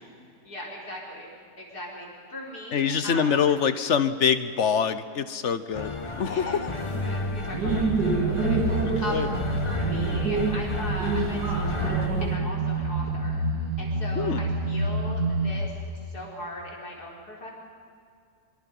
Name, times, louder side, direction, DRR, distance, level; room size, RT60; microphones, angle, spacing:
voice 1, 0.4-1.3 1.6-3.3 6.3-9.3 9.6-13.4 13.8-15.8 16.0-17.5, left 1 dB, 65° left, -2 dB, 5.2 m, -39 dB
voice 2, 2.7-6.7 8.8-9.3 14.1-14.4, left 7 dB, 50° left, 13 dB, 1.0 m, -25 dB
sound 1, 5.7-12.1, left 2 dB, 20° left, 1.1 m, -34 dB
sound 2, 6.9-12.3, right 3 dB, 80° right, 3.5 m, -28 dB
sound 3, 7.6-15.7, right 2 dB, 60° right, 2.3 m, -29 dB
25.0 x 24.5 x 5.4 m, 2.3 s
omnidirectional pair, 1.8 m